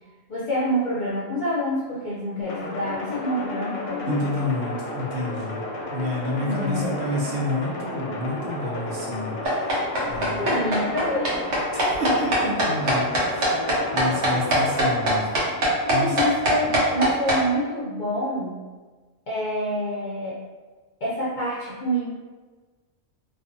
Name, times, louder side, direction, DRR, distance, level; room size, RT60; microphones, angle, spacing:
voice 1, 0.3-4.3 6.4-7.1 10.4-11.4 15.8-18.5 19.3-20.4 21.0-22.1, equal, 60° left, -8 dB, 0.5 m, -27 dB
sound 1, 2.5-16.2, left 2 dB, 90° left, 0.9 m, -33 dB
voice 2, 4.1-5.6 5.9-10.5 11.7-15.3 15.9-16.2, left 1 dB, 65° right, -3 dB, 0.8 m, -29 dB
sound 2, 9.5-17.4, equal, 85° right, 1.1 m, -21 dB
2.4 x 2.3 x 2.5 m, 1.4 s
omnidirectional pair, 1.2 m